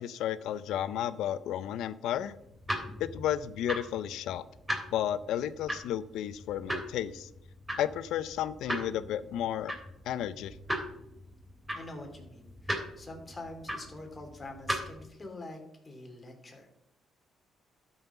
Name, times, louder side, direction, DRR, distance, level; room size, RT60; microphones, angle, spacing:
voice 1, 0.0-2.3 3.0-4.4 4.9-7.3 7.8-9.8 10.0-10.5, left 11 dB, 85° left, 15 dB, 0.6 m, -32 dB
sound 1, 2.1-15.1, equal, 10° right, 3.2 m, -39 dB
voice 2, 11.7-16.7, left 2 dB, 25° left, 3 dB, 2.7 m, -45 dB
12.5 x 5.6 x 5.9 m, 0.81 s
cardioid pair, 90°, 0 cm